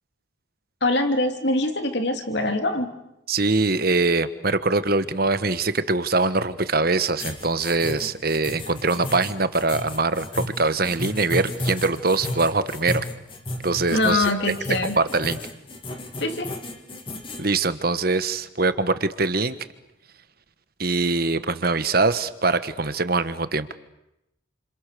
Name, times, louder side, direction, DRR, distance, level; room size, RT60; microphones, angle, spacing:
voice 1, 0.8-2.9 13.9-15.0 16.2-16.5, left 2 dB, 55° left, 6 dB, 3.1 m, -23 dB
voice 2, 3.3-13.1 13.6-14.3 15.0-15.4 17.4-19.6 20.8-23.7, right 3 dB, 50° right, 12 dB, 1.3 m, -23 dB
sound 1, 7.2-17.4, left 1 dB, 25° left, 2.8 m, -33 dB
30.0 x 27.5 x 6.9 m, 0.89 s
head